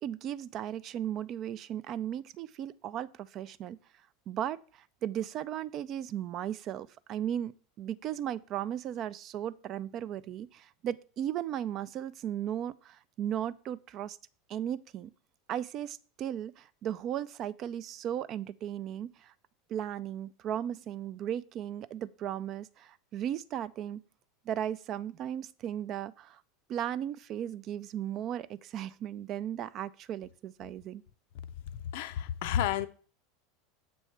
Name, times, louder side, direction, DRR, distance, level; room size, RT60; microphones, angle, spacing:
voice 1, 0.0-3.8 4.3-4.6 5.0-7.5 7.8-14.2 14.5-15.1 15.5-19.3 19.7-24.0 24.5-26.4 26.7-31.0, right 10 dB, 45° right, 0.4 m, -36 dB
voice 2, 31.9-32.9, left 10 dB, 65° left, 0.4 m, -30 dB
7.2 x 3.1 x 5.7 m
hypercardioid pair, 95°, 0 cm